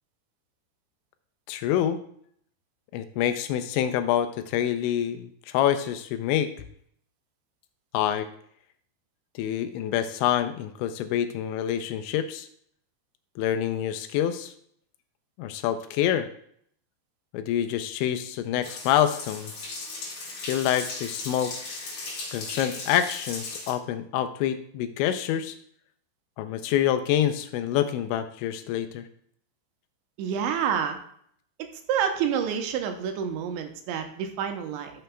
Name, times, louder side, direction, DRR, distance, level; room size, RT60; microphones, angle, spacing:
voice 1, 1.5-2.0 2.9-6.5 7.9-8.3 9.4-12.5 13.4-14.5 15.4-16.3 17.3-19.5 20.5-21.5 22.3-25.6 26.4-29.1, left 10 dB, 85° left, 9 dB, 2.8 m, -26 dB
sound 1, 18.6-23.7, left 3 dB, 50° left, 3.7 m, -37 dB
voice 2, 30.2-31.0 31.9-34.9, right 8 dB, 85° right, 5 dB, 2.9 m, -28 dB
12.0 x 6.8 x 2.2 m, 0.65 s
omnidirectional pair, 5.4 m